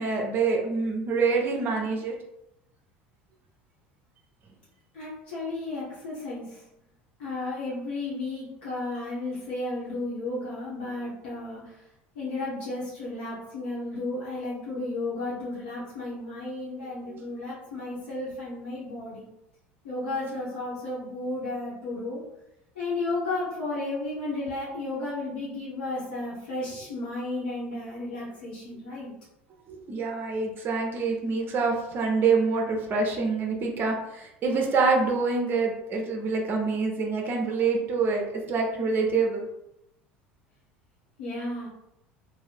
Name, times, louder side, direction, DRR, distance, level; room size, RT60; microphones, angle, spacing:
voice 1, 0.0-2.2 17.1-17.2 29.7-39.4, right 4 dB, 35° right, 1 dB, 0.6 m, -26 dB
voice 2, 4.9-6.6 7.2-11.8 12.1-19.2 19.8-22.2 22.7-29.1 41.2-41.7, left 2 dB, 65° left, -8 dB, 0.9 m, -33 dB
2.7 x 2.1 x 3.3 m, 0.84 s
figure-of-eight pair, 70°, 6 cm